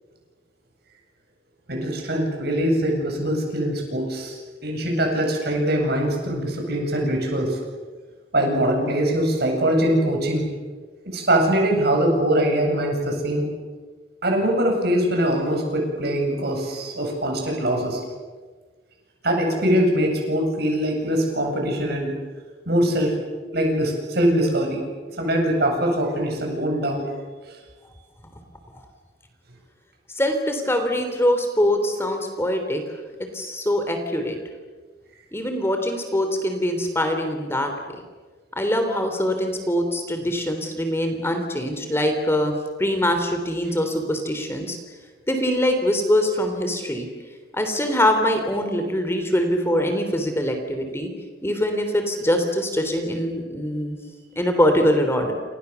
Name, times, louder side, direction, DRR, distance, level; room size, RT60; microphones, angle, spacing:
voice 1, 1.7-4.4 4.6-7.6 8.3-10.5 11.1-13.5 14.2-18.0 19.2-22.1 22.7-23.2 23.5-24.8 25.2-27.0, right 1 dB, 60° right, 2 dB, 7.9 m, -22 dB
voice 2, 30.2-32.8 33.3-34.4 35.3-37.7 38.6-44.8 45.3-47.1 47.5-51.1 51.4-54.0 54.3-55.3, left 1 dB, 15° left, 5 dB, 3.2 m, -23 dB
29.0 x 28.0 x 7.0 m, 1.4 s
head